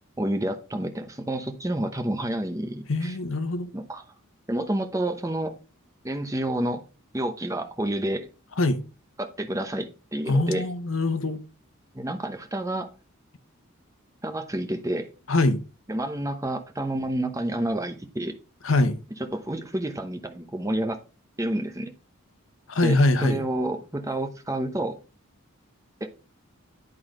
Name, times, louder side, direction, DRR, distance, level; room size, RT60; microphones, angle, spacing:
voice 1, 0.2-3.2 3.7-4.0 4.5-5.5 6.0-6.8 7.1-8.3 9.2-10.7 11.9-12.9 14.2-15.1 15.9-18.4 19.3-21.0 21.4-21.9 22.8-25.0 26.0-26.1, right 1 dB, 15° right, 0.9 m, -29 dB
voice 2, 2.9-3.7 8.6-8.8 10.3-11.4 15.3-15.6 18.6-19.0 22.7-23.5, left 2 dB, 65° left, 1.0 m, -23 dB
11.0 x 3.9 x 5.0 m
head